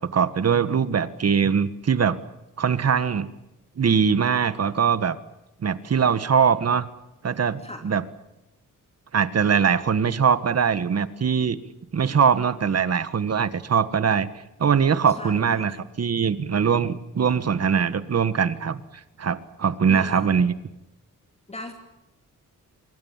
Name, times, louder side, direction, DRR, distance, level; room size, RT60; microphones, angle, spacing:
voice 1, 0.1-2.2 2.6-3.3 3.8-5.2 5.6-6.9 7.2-8.0 9.1-11.6 11.9-14.3 14.6-18.8 19.2-20.5, right 6 dB, 50° right, 14 dB, 1.6 m, -22 dB
voice 2, 7.6-7.9 15.2-15.7 19.9-20.3 21.5-21.7, left 1 dB, 20° left, 5 dB, 2.7 m, -39 dB
25.5 x 23.0 x 7.4 m, 0.94 s
wide cardioid pair, 110°, 32 cm